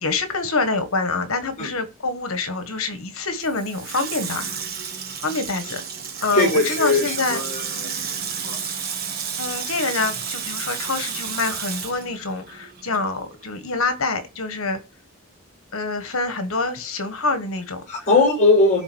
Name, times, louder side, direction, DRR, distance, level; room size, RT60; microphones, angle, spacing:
voice 1, 0.0-4.5 5.2-5.8 6.2-7.4 9.4-14.8 15.7-18.1, left 3 dB, 75° left, 1.4 m, -26 dB
Water tap faucet / Sink (filling or washing), 3.4-13.1 13.4-13.5, right 7 dB, 45° right, 1.5 m, -31 dB
voice 2, 6.3-7.9 8.4-8.6 17.9-18.8, left 2 dB, 35° left, 5.2 m, -19 dB
11.0 x 3.8 x 6.1 m
head